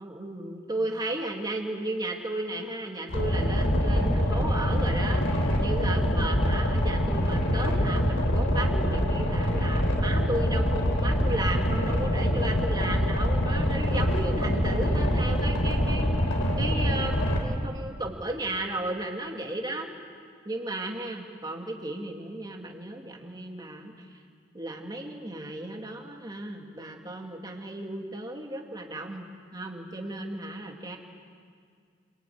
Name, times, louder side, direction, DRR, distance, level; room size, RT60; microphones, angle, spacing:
voice 1, 0.0-16.1 16.6-19.9 20.4-23.9 24.5-31.0, right 1 dB, 20° right, 1 dB, 2.6 m, -34 dB
Boat Water vehicle, 3.1-17.4, equal, 70° left, 4.6 m, -25 dB
26.5 x 23.0 x 9.6 m, 2.1 s
head